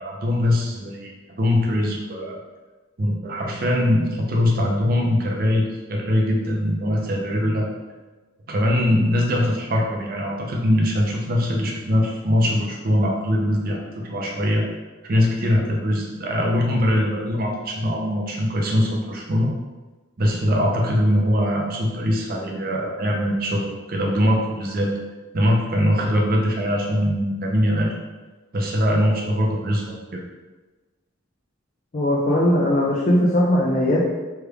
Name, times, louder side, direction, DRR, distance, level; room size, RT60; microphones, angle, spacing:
voice 1, 0.0-2.4 3.0-7.7 8.5-14.6 15.0-19.5 20.2-24.9 25.3-28.0 28.5-30.2, equal, 45° right, -1 dB, 0.5 m, -22 dB
voice 2, 31.9-34.0, left 1 dB, 35° left, -5 dB, 0.4 m, -19 dB
3.3 x 3.2 x 2.3 m, 1.2 s
head